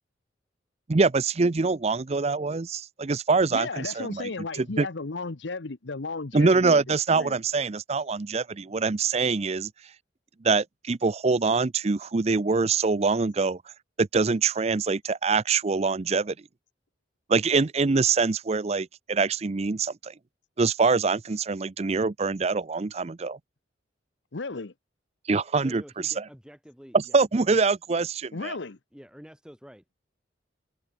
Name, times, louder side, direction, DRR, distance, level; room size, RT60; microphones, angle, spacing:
voice 1, 0.9-4.3 4.6-4.9 6.3-9.7 10.4-13.6 14.0-16.3 17.3-20.1 20.6-23.4 25.3-25.8 26.9-28.5, right 4 dB, 35° right, 0.5 m, -24 dB
voice 2, 3.5-6.8 7.1-7.4 24.3-24.7 28.3-28.8, left 3 dB, 75° left, 1.0 m, -34 dB
voice 3, 25.6-27.2 28.9-30.0, equal, 5° right, 6.5 m, -48 dB
head